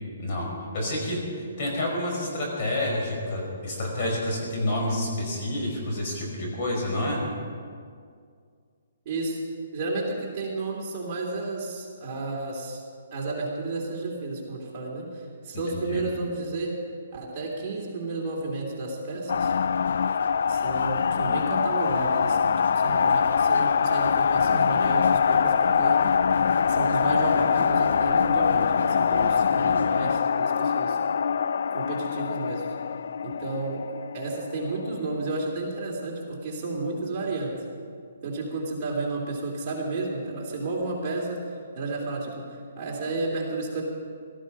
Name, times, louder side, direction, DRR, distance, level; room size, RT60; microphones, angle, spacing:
voice 1, 0.2-0.5 0.7-7.2 15.7-16.0, left 1 dB, 40° left, -1 dB, 5.2 m, -29 dB
voice 2, 9.0-9.4 9.7-12.8 13.1-16.7 17.1-19.5 20.5-26.0 26.7-31.0 31.7-32.7 33.2-33.9 34.1-37.6 38.2-43.8, right 2 dB, 30° right, -3 dB, 3.1 m, -32 dB
sound 1, 19.3-35.1, left 6 dB, 65° left, 0.3 m, -23 dB
17.0 x 14.5 x 5.4 m, 2.2 s
hypercardioid pair, 160°, 0 cm